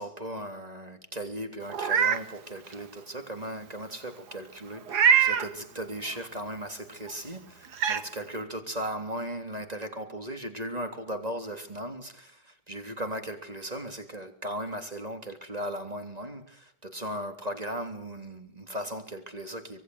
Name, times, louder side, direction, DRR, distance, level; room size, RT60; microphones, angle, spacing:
voice 1, 0.0-19.8, right 1 dB, 20° right, 3.4 m, -37 dB
Meow, 1.7-2.2 2.7-2.8 4.9-5.5 7.1-7.2 7.7-8.0, right 7 dB, 65° right, 1.9 m, -22 dB
25.5 x 21.5 x 7.9 m
omnidirectional pair, 1.8 m